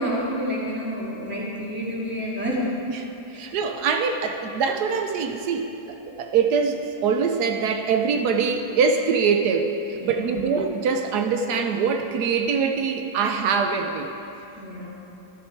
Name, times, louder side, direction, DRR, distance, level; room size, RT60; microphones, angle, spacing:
voice 1, 0.0-2.6 3.3-3.5 9.9-10.5 14.6-14.9, equal, 5° right, -5 dB, 2.2 m, -29 dB
voice 2, 3.3-14.1, right 5 dB, 85° right, 5 dB, 1.3 m, -23 dB
13.0 x 12.0 x 4.5 m, 2.9 s
omnidirectional pair, 1.7 m